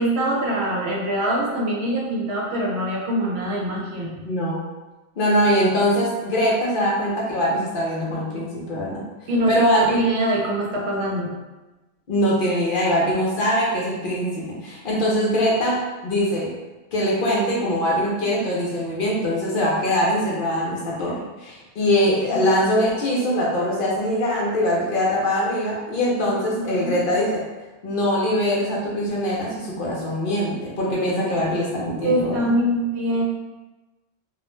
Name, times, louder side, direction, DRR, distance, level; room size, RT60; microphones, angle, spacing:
voice 1, 0.0-4.3 9.3-9.6 9.9-11.3 26.6-27.0 32.0-33.2, right 1 dB, 70° right, -2 dB, 0.9 m, -23 dB
voice 2, 4.2-4.6 5.2-9.0 9.5-10.0 12.1-16.5 16.9-27.4 27.8-32.5, equal, 55° left, -5 dB, 0.7 m, -22 dB
2.4 x 2.1 x 3.0 m, 1.1 s
omnidirectional pair, 1.2 m